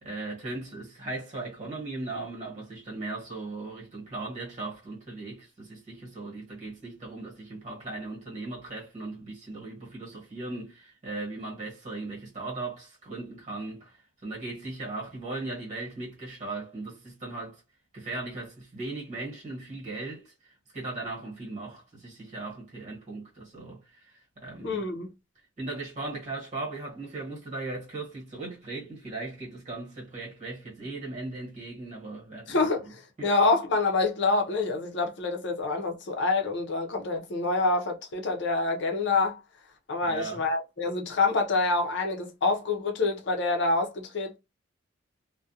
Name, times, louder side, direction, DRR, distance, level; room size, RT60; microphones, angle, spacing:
voice 1, 0.0-17.6 17.9-24.8 25.6-32.7 33.2-33.3 40.0-40.5, right 2 dB, 40° right, 1.2 m, -38 dB
voice 2, 24.6-25.1 32.5-39.4 39.9-44.4, left 3 dB, 65° left, 0.6 m, -27 dB
2.3 x 2.1 x 2.7 m
head